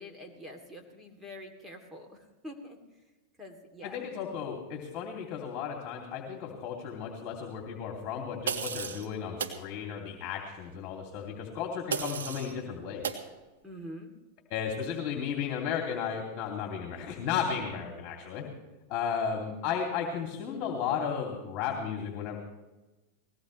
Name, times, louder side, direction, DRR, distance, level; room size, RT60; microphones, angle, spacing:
voice 1, 0.0-2.8 3.4-4.0 13.6-14.1, left 1 dB, 5° right, 2 dB, 2.9 m, -45 dB
voice 2, 3.8-13.2 14.5-18.4 18.9-22.4, left 7 dB, 45° left, 1 dB, 2.9 m, -34 dB
sound 1, 8.5-9.1 9.4-9.6 11.9-12.5 13.0-13.2, right 7 dB, 85° right, 1.9 m, -33 dB
20.0 x 17.5 x 3.3 m, 1.1 s
hypercardioid pair, 110°, 0 cm